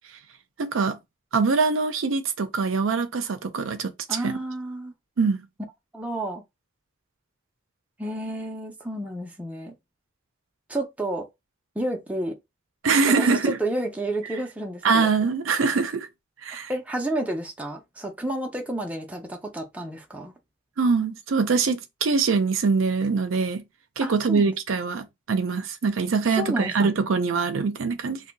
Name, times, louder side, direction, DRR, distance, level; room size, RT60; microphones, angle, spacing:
voice 1, 0.6-1.0 1.3-3.9 4.2-4.3 5.2-5.4 12.8-13.6 14.8-16.1 16.4-16.7 20.8-23.6 24.0-28.2, right 4 dB, 75° right, 0.5 m, -23 dB
voice 2, 4.1-4.9 5.9-6.4 8.0-9.7 10.7-11.3 11.8-12.4 13.1-15.1 16.7-20.3 24.0-24.5 26.3-27.0, right 1 dB, 5° right, 0.5 m, -30 dB
2.6 x 2.2 x 3.8 m
head